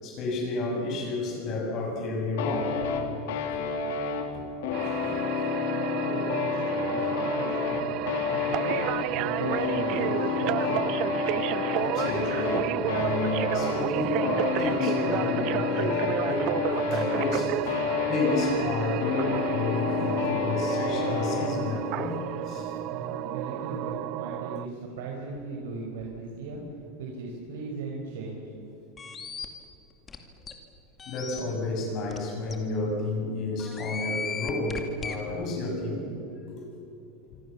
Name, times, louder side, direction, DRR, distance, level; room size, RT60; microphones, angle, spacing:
voice 1, 0.0-2.9 3.5-3.6 11.8-16.5 16.8-17.8 18.1-22.7 31.1-36.1 36.5-36.6 37.3-37.4, left 2 dB, 35° left, 0 dB, 7.3 m, -30 dB
sound 1, 2.4-21.6, left 5 dB, 70° left, 3.9 m, -30 dB
sound 2, 4.7-24.7, right 14 dB, 40° right, 0.7 m, -32 dB
voice 2, 5.6-8.9 9.1-10.9 22.9-26.6 27.0-28.4, right 3 dB, 85° right, -1 dB, 5.2 m, -38 dB
sound 3, 29.0-29.5 30.1-30.2 30.5-30.6 31.0-31.4 32.1-32.2 32.5-32.6 33.6-35.2, left 6 dB, 15° left, 2.2 m, -35 dB
26.5 x 25.0 x 7.3 m, 2.9 s
supercardioid pair, 160°, 0 cm